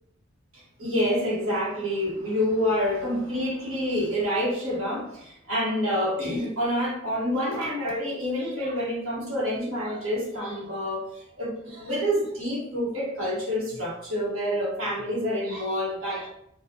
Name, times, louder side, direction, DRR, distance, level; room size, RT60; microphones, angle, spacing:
voice 1, 0.8-11.1 11.4-16.3, equal, 80° right, -6 dB, 1.5 m, -27 dB
4.0 x 2.5 x 2.8 m, 0.74 s
head